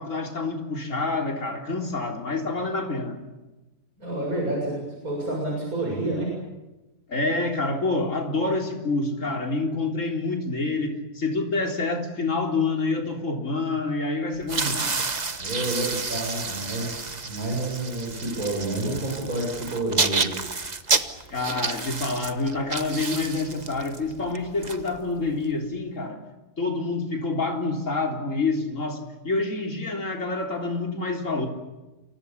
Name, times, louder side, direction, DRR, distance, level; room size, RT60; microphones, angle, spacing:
voice 1, 0.0-3.2 7.1-15.0 21.3-26.2 26.6-31.5, left 3 dB, 50° left, 4.0 m, -27 dB
voice 2, 4.0-6.3 15.4-20.3 20.8-21.3, right 2 dB, 60° right, 7.8 m, -29 dB
sound 1, 14.4-25.4, right 4 dB, 30° right, 1.3 m, -30 dB
29.5 x 25.0 x 7.2 m
omnidirectional pair, 1.7 m